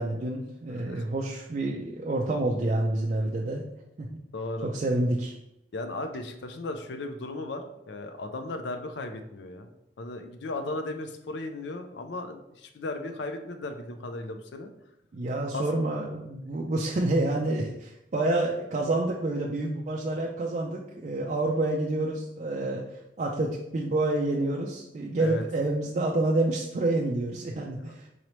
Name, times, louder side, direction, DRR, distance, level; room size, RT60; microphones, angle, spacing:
voice 1, 0.0-3.6 4.0-4.2 4.6-5.3 15.1-22.9 23.2-28.1, right 2 dB, 40° right, -2 dB, 0.3 m, -28 dB
voice 2, 4.3-4.7 5.7-9.7 10.0-14.7 15.5-15.7 25.2-25.4 27.5-27.9, left 2 dB, 65° left, 7 dB, 0.4 m, -36 dB
3.9 x 3.1 x 3.0 m, 0.83 s
head